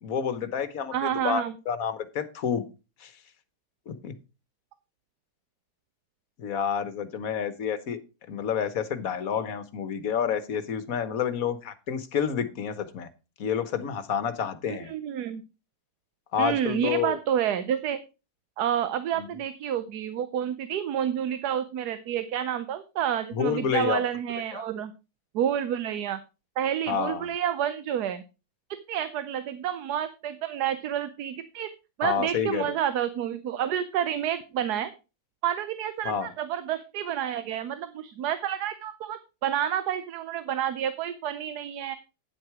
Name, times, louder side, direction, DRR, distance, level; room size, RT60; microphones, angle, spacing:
voice 1, 0.0-2.7 3.0-3.1 3.9-4.1 6.4-8.0 8.3-13.1 13.4-14.9 16.3-17.2 19.2-19.3 23.3-24.0 24.5-24.7 26.9-27.3 32.0-32.7 36.0-36.3, left 7 dB, 65° left, 12 dB, 1.4 m, -29 dB
voice 2, 0.9-1.5 14.7-15.4 16.4-18.0 18.6-24.9 25.3-26.2 26.6-28.2 28.9-31.7 32.0-34.9 35.4-42.0, right 10 dB, 90° right, 12 dB, 1.3 m, -29 dB
9.5 x 7.7 x 4.7 m, 0.30 s
omnidirectional pair, 1.7 m